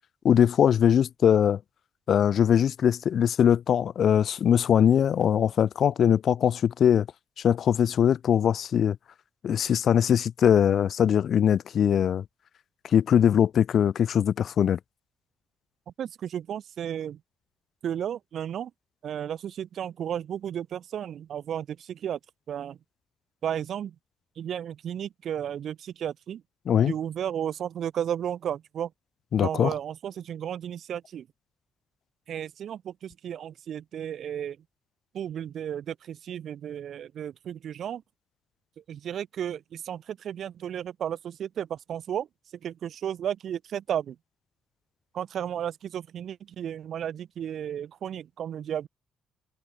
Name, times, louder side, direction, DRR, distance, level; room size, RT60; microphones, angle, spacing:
voice 1, 0.2-1.6 2.1-7.1 7.4-9.0 9.4-12.2 12.8-14.8 26.7-26.9 29.3-29.7, left 9 dB, 60° left, 0.5 m, -21 dB
voice 2, 16.0-17.2 17.8-18.7 19.0-22.2 22.5-22.8 23.4-23.9 24.4-26.4 26.9-28.9 29.4-31.3 32.3-34.6 35.1-38.0 38.9-42.3 42.6-44.1 45.1-48.9, right 9 dB, 65° right, 1.9 m, -33 dB
cardioid pair, 90°, 0 cm